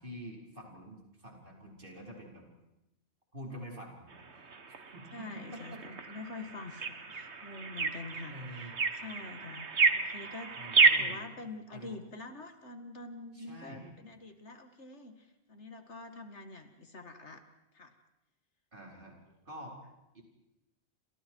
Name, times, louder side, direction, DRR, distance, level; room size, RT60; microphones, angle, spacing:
voice 1, 0.0-2.4 3.3-4.2 4.9-5.8 8.3-8.7 10.5-11.3 11.7-12.0 13.3-13.9 18.7-19.2 19.4-19.8 20.1-20.2, equal, 45° right, 0 dB, 5.0 m, -47 dB
sound 1, 4.1-11.2, right 4 dB, 65° right, 1.8 m, -31 dB
voice 2, 5.1-10.6 11.0-17.4 17.7-17.9, left 3 dB, 70° left, 6 dB, 2.4 m, -46 dB
30.0 x 26.5 x 4.7 m, 0.91 s
omnidirectional pair, 1.2 m